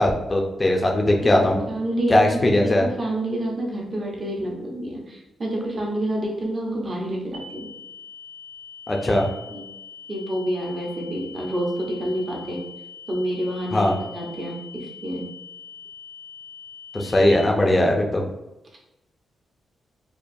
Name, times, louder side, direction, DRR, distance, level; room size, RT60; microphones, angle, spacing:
voice 1, 0.0-1.6 2.1-2.9 8.9-9.3 13.7-13.9 16.9-18.2, left 1 dB, 25° left, 1 dB, 0.6 m, -19 dB
voice 2, 1.7-7.7 9.5-9.7 10.1-12.6 13.1-15.3, right 1 dB, 35° right, -1 dB, 1.0 m, -28 dB
sound 1, 7.3-17.3, left 5 dB, 70° right, 0.9 m, -43 dB
4.6 x 2.4 x 2.7 m, 0.96 s
cardioid pair, 115°, 0 cm